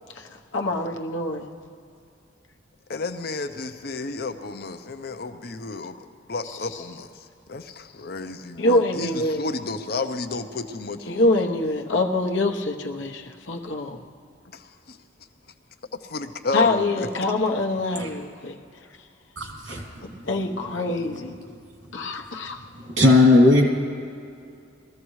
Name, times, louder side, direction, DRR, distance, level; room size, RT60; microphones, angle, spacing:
voice 1, 0.2-1.5 6.4-6.8 8.6-9.5 11.0-14.0 16.5-18.6 20.0-21.3 21.9-22.6, left 2 dB, 70° left, 2 dB, 1.0 m, -25 dB
voice 2, 2.9-6.0 6.3-7.1 7.5-11.5 14.5-15.0 16.0-17.1, left 3 dB, 50° left, 8 dB, 0.7 m, -32 dB
voice 3, 19.4-20.0 23.0-23.7, left 2 dB, 85° right, 0 dB, 2.8 m, -17 dB
21.5 x 14.5 x 3.2 m, 2.5 s
head